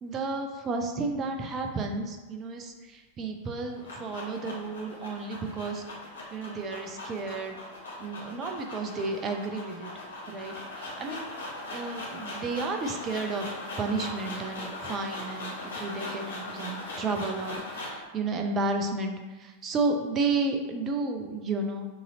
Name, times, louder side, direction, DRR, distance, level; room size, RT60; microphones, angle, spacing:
voice 1, 0.0-5.8 6.3-7.6 8.0-9.9 10.3-11.3 11.7-13.5 13.8-21.9, right 3 dB, 25° right, 4 dB, 0.6 m, -32 dB
sound 1, 3.4-18.1, left 2 dB, 70° left, 1.2 m, -40 dB
6.5 x 2.8 x 2.8 m, 1.2 s
figure-of-eight pair, 90°, 0 cm